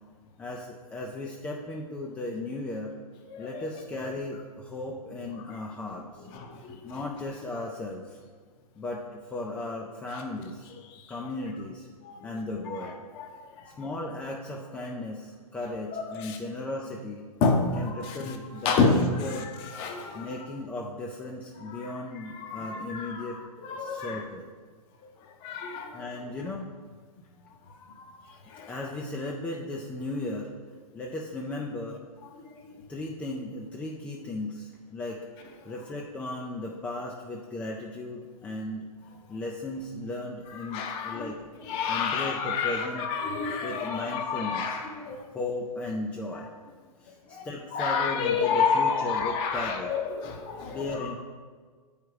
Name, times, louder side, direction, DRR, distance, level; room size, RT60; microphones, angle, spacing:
voice 1, 0.4-2.9 3.4-6.3 6.8-8.2 8.8-10.7 11.1-11.9 12.2-13.1 13.7-17.3 17.8-19.5 20.1-23.4 23.8-24.5 25.9-26.7 28.7-30.5 30.9-32.0 32.9-35.2 35.6-38.9 39.3-41.4 41.9-43.0 43.6-44.8 45.3-46.5 47.0-49.9 50.7-51.2, left 2 dB, 5° left, -1 dB, 0.3 m, -36 dB
voice 2, 6.3-6.8 12.0-12.3 13.2-13.3 13.6-13.7 16.2-16.4 17.4-18.3 18.6-19.4 19.7-20.3 21.7-21.8 22.3-24.2 25.4-26.1 28.0-28.2 28.5-28.7 40.7-41.3 41.7-45.3 47.3-47.4 47.7-51.2, left 4 dB, 25° left, 4 dB, 0.7 m, -29 dB
7.9 x 4.9 x 4.7 m, 1.6 s
hypercardioid pair, 145°, 20 cm